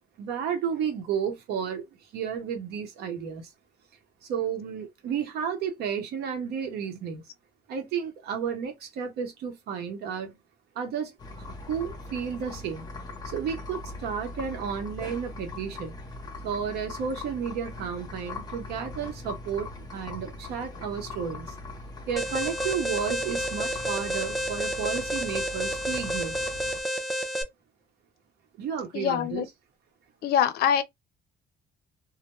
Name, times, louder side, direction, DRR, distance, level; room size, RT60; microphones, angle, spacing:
voice 1, 0.2-1.9 2.1-3.5 4.2-7.2 7.7-10.3 10.7-12.9 13.2-15.9 16.4-21.6 22.1-26.4 28.6-29.4, right 7 dB, 75° right, 0.9 m, -32 dB
sound 1, 11.2-26.8, left 2 dB, 25° left, 0.8 m, -40 dB
Alarm, 22.2-27.4, equal, ahead, 0.5 m, -30 dB
voice 2, 28.9-29.5 30.2-30.8, left 9 dB, 65° left, 0.5 m, -24 dB
2.2 x 2.1 x 3.0 m
cardioid pair, 110°, 17 cm